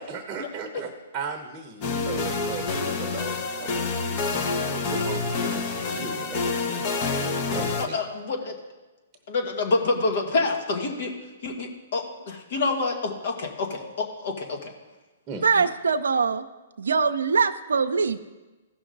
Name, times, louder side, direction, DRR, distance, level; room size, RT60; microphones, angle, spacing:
voice 1, 0.0-4.3 4.7-6.9 7.5-8.0 12.0-12.1 15.3-15.6, right 5 dB, 25° right, 4 dB, 0.9 m, -37 dB
sound 1, 1.8-7.9, left 4 dB, 40° left, 1.1 m, -27 dB
voice 2, 7.8-8.5 9.3-11.1 11.4-14.7, left 3 dB, 60° left, 3 dB, 1.9 m, -27 dB
voice 3, 15.4-16.4 16.8-18.2, right 5 dB, 85° right, 8 dB, 0.5 m, -22 dB
15.5 x 6.0 x 3.9 m, 1.2 s
hypercardioid pair, 135°, 0 cm